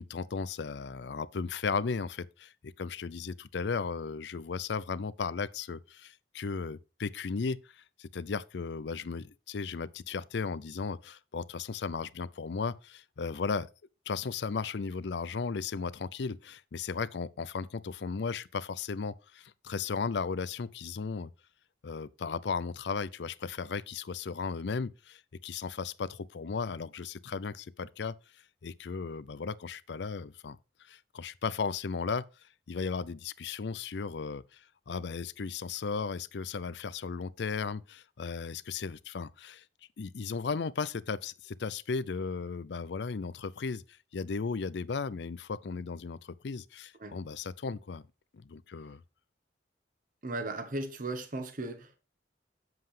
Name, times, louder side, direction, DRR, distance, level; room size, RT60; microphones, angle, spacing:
voice 1, 0.0-13.7 14.1-21.3 21.8-28.1 28.6-30.6 30.9-32.2 32.7-39.6 40.0-43.8 44.1-48.0 48.5-49.0, left 5 dB, 70° left, 0.5 m, -35 dB
voice 2, 50.2-52.0, right 2 dB, 50° right, 1.2 m, -36 dB
7.7 x 7.5 x 3.3 m
head